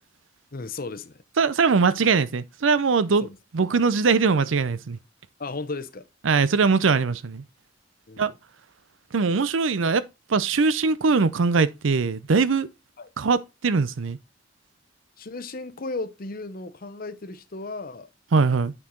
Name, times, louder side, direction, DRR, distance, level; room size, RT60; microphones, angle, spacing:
voice 1, 0.5-1.2 5.4-6.1 8.1-8.2 13.0-13.1 15.2-18.1, left 3 dB, 50° left, 0.8 m, -35 dB
voice 2, 1.4-5.0 6.2-7.4 8.2-8.3 9.1-10.0 10.3-12.7 13.2-14.2 18.3-18.7, right 4 dB, 85° right, 0.6 m, -21 dB
8.6 x 4.7 x 3.8 m
head